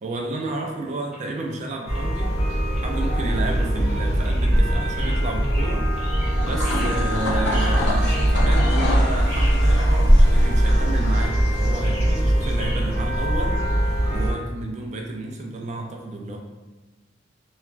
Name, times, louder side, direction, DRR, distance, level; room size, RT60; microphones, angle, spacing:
voice 1, 0.0-2.3 2.8-5.9 6.4-13.7 14.1-16.4, right 2 dB, 40° right, 1 dB, 0.3 m, -31 dB
sound 1, 1.1-1.2 1.9-2.0 2.8-2.9 3.6-3.7 4.2-4.3 4.7-4.8 5.1-5.2 5.4-5.7 6.0-7.1 7.3-7.4 7.7-8.1 8.4-9.5, left 1 dB, 5° right, 0.7 m, -45 dB
sound 2, 1.9-14.3, equal, 15° left, 1.3 m, -20 dB
sound 3, 6.3-12.1, left 2 dB, 65° left, 0.6 m, -31 dB
3.0 x 2.2 x 2.4 m, 1.2 s
head